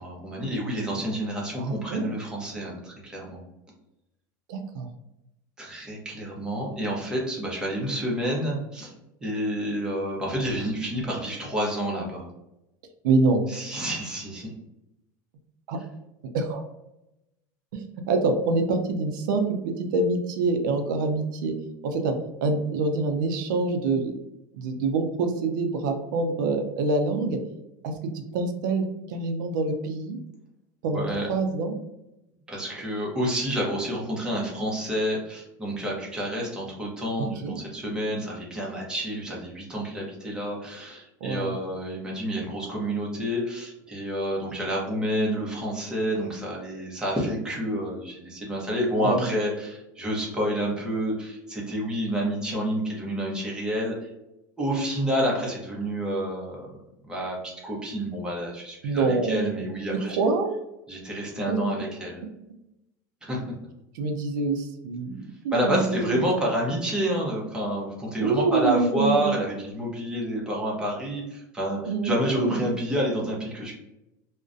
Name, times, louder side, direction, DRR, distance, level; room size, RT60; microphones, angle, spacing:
voice 1, 0.0-3.4 5.6-8.9 9.2-12.3 13.5-14.5 30.9-31.3 32.5-54.1 54.6-56.6 57.1-60.2 60.9-62.2 63.2-63.4 65.5-73.7, equal, 10° right, -3 dB, 0.7 m, -29 dB
voice 2, 1.6-2.1 4.5-4.9 13.0-13.4 15.7-15.8 16.3-16.7 17.7-21.5 21.8-22.1 22.4-24.1 24.5-27.4 27.8-30.2 30.8-31.7 37.2-37.6 41.2-41.6 49.0-49.2 58.8-59.6 60.2-60.6 61.5-61.7 63.9-66.3 68.2-69.4 71.8-72.7, right 3 dB, 80° right, 5 dB, 0.4 m, -26 dB
2.3 x 2.1 x 2.5 m, 0.89 s
supercardioid pair, 145°, 10 cm